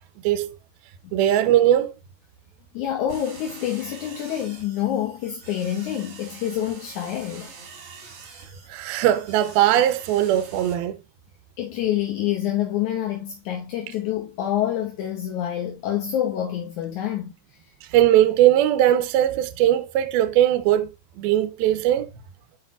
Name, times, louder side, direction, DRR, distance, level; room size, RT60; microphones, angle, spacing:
voice 1, 0.2-0.5 1.1-2.0 8.7-11.0 17.8-20.9 21.2-22.1, right 12 dB, 75° right, 2.5 m, -19 dB
voice 2, 2.7-7.5 11.6-17.3, left 11 dB, 75° left, 1.8 m, -27 dB
sound 1, 3.1-10.7, right 5 dB, 45° right, 2.1 m, -45 dB
7.6 x 6.3 x 2.4 m
omnidirectional pair, 4.6 m